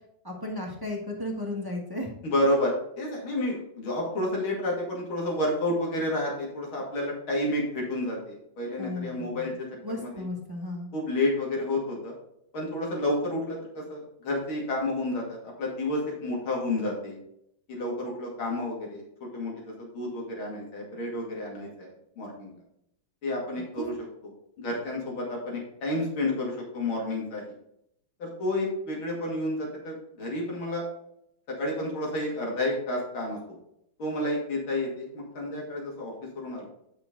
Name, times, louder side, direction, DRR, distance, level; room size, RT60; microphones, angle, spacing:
voice 1, 0.2-2.1 8.8-10.9 23.8-23.9, left 1 dB, 15° right, -1 dB, 1.1 m, -35 dB
voice 2, 2.2-9.7 9.9-10.2 10.9-12.1 12.5-17.2 17.7-22.5 23.2-23.9 24.6-27.4 28.2-30.8 31.6-33.4 34.0-36.7, left 1 dB, 75° left, -2 dB, 3.2 m, -30 dB
8.6 x 5.8 x 3.9 m, 0.76 s
omnidirectional pair, 2.3 m